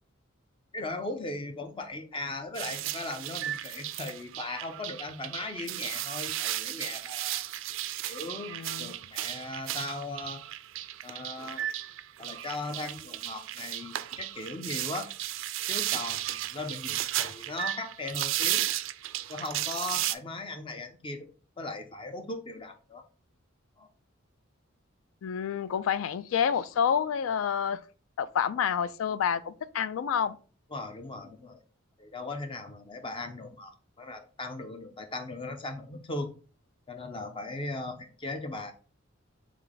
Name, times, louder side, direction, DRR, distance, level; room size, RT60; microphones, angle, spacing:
voice 1, 0.7-7.4 8.0-10.4 11.0-11.6 12.2-15.1 15.7-18.6 19.3-23.0 23.8-23.9 30.7-31.6 32.0-36.3 36.9-38.7, left 2 dB, 25° left, 0.6 m, -38 dB
sound 1, 2.5-20.1, right 14 dB, 70° right, 0.3 m, -34 dB
voice 2, 8.5-8.9 25.2-27.8 28.2-30.4, left 7 dB, 80° left, 0.3 m, -28 dB
3.6 x 3.3 x 3.9 m
head